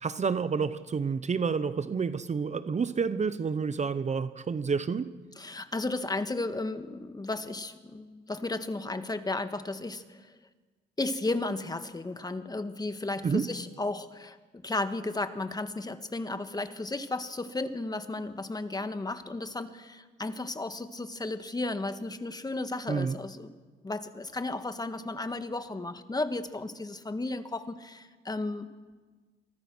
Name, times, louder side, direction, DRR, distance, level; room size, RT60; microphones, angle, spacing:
voice 1, 0.0-5.1 13.2-13.5 22.9-23.2, right 5 dB, 35° right, 13 dB, 1.0 m, -29 dB
voice 2, 5.4-10.3 11.0-23.5 23.8-28.7, left 2 dB, 20° left, 10 dB, 1.7 m, -34 dB
28.5 x 23.5 x 6.3 m, 1.4 s
cardioid pair, 90°, 20 cm